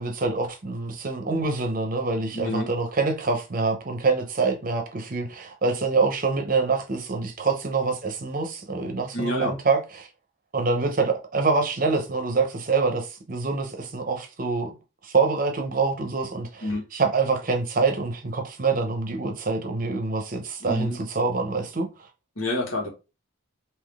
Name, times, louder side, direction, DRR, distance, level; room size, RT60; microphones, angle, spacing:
voice 1, 0.0-10.1 10.5-14.8 15.0-21.9, right 4 dB, 40° right, 0.8 m, -25 dB
voice 2, 2.3-2.7 9.1-9.5 16.6-16.8 20.6-21.0 22.4-22.9, left 1 dB, 80° left, 1.6 m, -27 dB
3.8 x 2.9 x 3.5 m
head